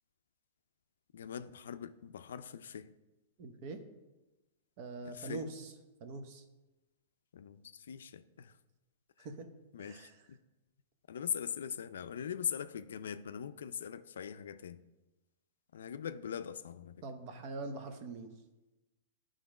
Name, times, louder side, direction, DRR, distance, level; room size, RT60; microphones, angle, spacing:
voice 1, 1.1-2.9 5.0-5.5 7.3-8.6 9.2-9.3 9.7-10.4 11.1-14.8 15.7-17.0, left 8 dB, 85° left, 0.4 m, -41 dB
voice 2, 3.4-3.8 4.8-5.7 6.0-6.4 9.2-9.5 9.8-10.1 17.0-18.3, right 3 dB, 45° right, 0.9 m, -43 dB
10.0 x 3.8 x 4.9 m
hypercardioid pair, 135°, 0 cm